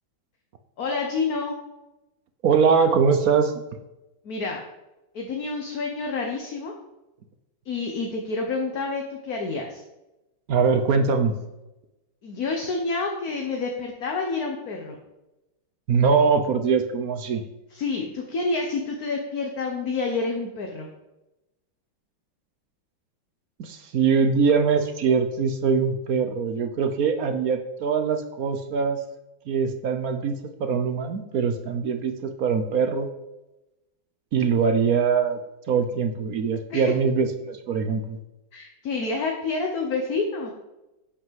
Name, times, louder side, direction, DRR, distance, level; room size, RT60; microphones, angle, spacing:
voice 1, 0.8-1.6 4.2-4.6 5.1-6.7 7.6-9.8 12.2-15.0 17.7-20.9 36.7-36.9 38.5-40.5, left 3 dB, 55° left, 2 dB, 1.6 m, -28 dB
voice 2, 2.4-3.5 10.5-11.3 15.9-17.4 23.6-29.0 29.5-30.3 30.6-33.1 34.3-35.4 35.7-38.2, right 5 dB, 55° right, 8 dB, 1.2 m, -22 dB
10.5 x 6.3 x 7.5 m, 0.98 s
omnidirectional pair, 2.1 m